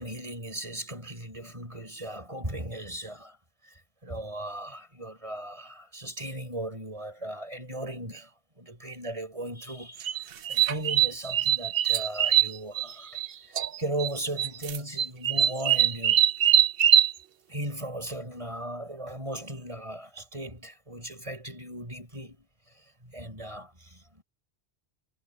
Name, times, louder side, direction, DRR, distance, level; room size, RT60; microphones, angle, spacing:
voice 1, 0.0-3.4 3.6-13.1 13.8-16.3 17.5-22.5 22.7-24.2, right 1 dB, 30° right, 6.3 m, -37 dB
sound 1, 10.0-13.3 13.6-14.1 14.4-17.1, right 10 dB, 65° right, 0.9 m, -22 dB
omnidirectional pair, 1.1 m